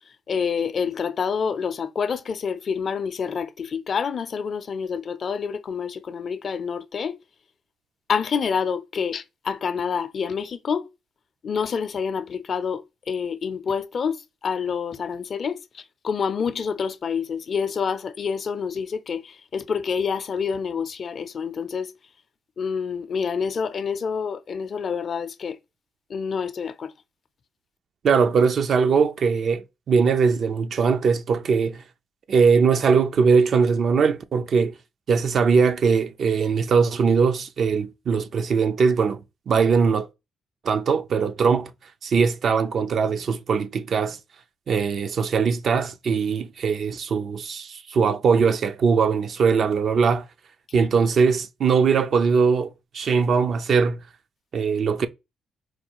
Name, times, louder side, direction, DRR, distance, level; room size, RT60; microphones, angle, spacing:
voice 1, 0.3-7.2 8.1-10.9 11.4-14.2 14.4-21.9 22.6-25.6 26.1-26.9, left 6 dB, 50° left, 0.4 m, -27 dB
voice 2, 28.0-31.8 32.3-34.7 35.1-40.1 40.6-41.7 42.0-44.2 44.7-50.2 50.7-54.0 54.5-55.1, right 5 dB, 55° right, 0.4 m, -21 dB
4.5 x 2.3 x 2.9 m
cardioid pair, 90°, 0 cm